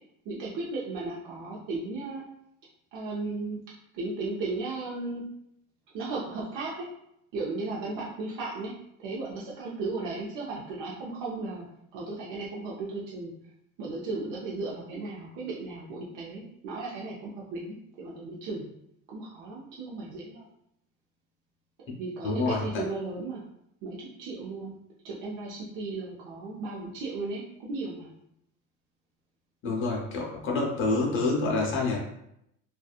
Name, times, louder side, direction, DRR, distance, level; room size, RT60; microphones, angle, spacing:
voice 1, 0.3-2.2 2.9-3.6 3.9-5.2 5.9-6.9 7.3-8.7 9.0-11.7 11.9-13.3 13.8-18.7 19.1-20.5 22.0-23.4 23.8-24.8 25.0-28.1, right 3 dB, 75° right, -5 dB, 0.6 m, -35 dB
voice 2, 22.2-22.6 29.6-32.0, left 3 dB, 40° left, -2 dB, 0.7 m, -27 dB
2.7 x 2.3 x 2.3 m, 0.77 s
cardioid pair, 155°, 32 cm